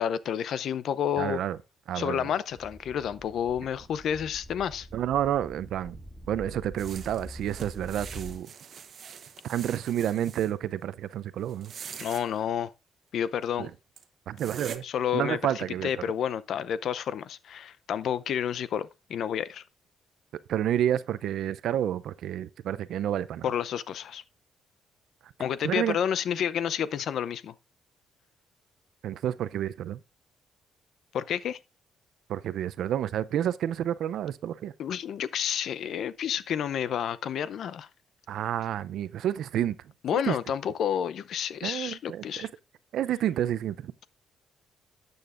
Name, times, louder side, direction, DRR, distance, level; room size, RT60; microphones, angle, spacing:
voice 1, 0.0-1.4 1.9-4.9 12.0-12.7 13.1-13.7 14.8-19.6 23.4-24.2 25.4-27.5 31.1-31.6 34.8-37.9 40.0-42.5, left 9 dB, 70° left, 0.6 m, -30 dB
voice 2, 1.2-1.6 1.9-2.3 4.9-6.0 6.3-8.5 9.4-11.7 13.6-13.7 14.3-14.8 15.1-16.1 20.5-23.5 25.2-25.3 25.6-26.0 29.0-30.0 32.3-34.7 38.3-39.8 40.1-40.4 41.6-42.5 42.9-43.9, right 11 dB, 75° right, 0.5 m, -29 dB
sound 1, 2.5-8.4, right 1 dB, 5° right, 2.1 m, -45 dB
sound 2, 6.8-10.5 11.5-12.2 13.4-13.5 14.0-14.1 14.4-14.8, right 7 dB, 55° right, 1.0 m, -43 dB
12.5 x 7.9 x 2.5 m
cardioid pair, 90°, 0 cm